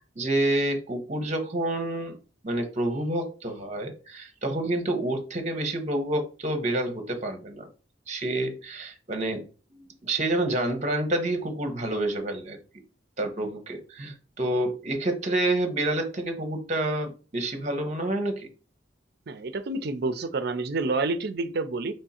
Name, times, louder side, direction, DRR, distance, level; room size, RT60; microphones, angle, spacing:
voice 1, 0.2-2.2 2.4-7.7 8.1-9.5 9.8-12.6 13.2-18.5, right 1 dB, 40° right, 1.0 m, -28 dB
voice 2, 19.3-21.9, right 3 dB, 60° right, 0.6 m, -28 dB
3.6 x 3.2 x 4.2 m
head